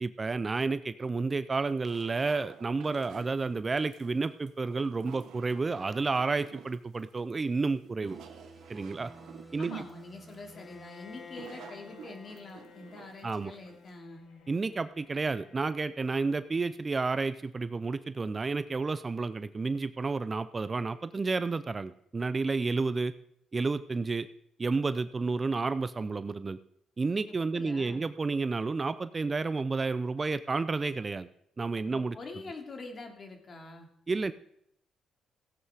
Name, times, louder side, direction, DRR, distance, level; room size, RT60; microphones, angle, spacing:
voice 1, 0.0-8.2 8.7-9.1 9.5-9.7 13.2-13.5 14.5-23.1 23.5-24.3 24.6-26.6 27.0-31.3 31.6-32.2 34.1-34.3, right 4 dB, 30° right, 14 dB, 0.5 m, -31 dB
sound 1, 1.9-14.0, right 9 dB, 80° right, 1.1 m, -51 dB
sound 2, 8.0-12.5, right 2 dB, 10° left, 2.8 m, -54 dB
voice 2, 9.6-14.3 27.5-28.0 31.9-33.9, left 3 dB, 45° left, 3 dB, 2.6 m, -45 dB
Bowed string instrument, 10.5-16.5, left 6 dB, 70° left, 1.9 m, -53 dB
16.0 x 8.0 x 4.9 m, 0.73 s
cardioid pair, 90°, 0 cm